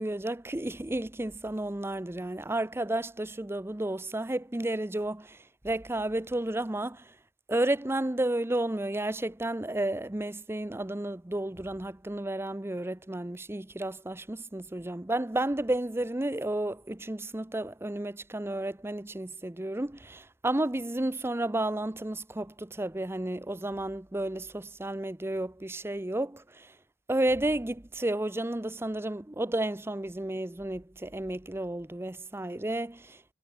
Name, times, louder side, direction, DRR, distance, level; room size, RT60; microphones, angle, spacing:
voice 1, 0.0-5.4 5.6-7.0 7.5-26.7 27.1-33.2, right 1 dB, 15° right, 0.6 m, -32 dB
head